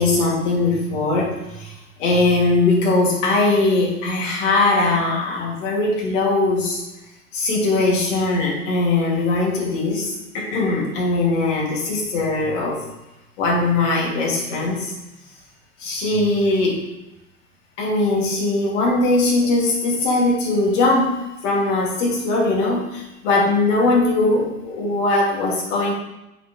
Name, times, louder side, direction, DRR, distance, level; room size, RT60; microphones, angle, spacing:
voice 1, 0.0-1.7 2.0-6.8 7.3-12.8 13.4-14.9 15.8-16.8 17.8-25.9, left 2 dB, 55° left, -2 dB, 2.9 m, -20 dB
7.7 x 6.6 x 3.3 m, 0.94 s
figure-of-eight pair, 85°, 44 cm